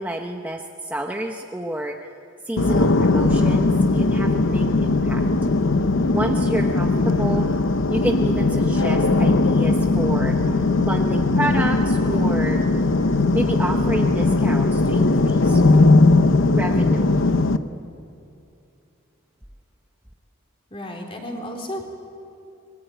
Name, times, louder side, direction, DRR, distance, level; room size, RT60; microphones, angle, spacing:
voice 1, 0.0-2.0 2.4-5.2 6.1-7.5 7.9-12.6 13.3-15.6 16.5-17.1, right 1 dB, 10° right, 2 dB, 1.0 m, -29 dB
sound 1, 2.6-17.6, left 2 dB, 60° left, 0.9 m, -19 dB
voice 2, 20.7-21.9, equal, 25° left, 1 dB, 3.9 m, -33 dB
26.0 x 21.5 x 9.3 m, 2.7 s
head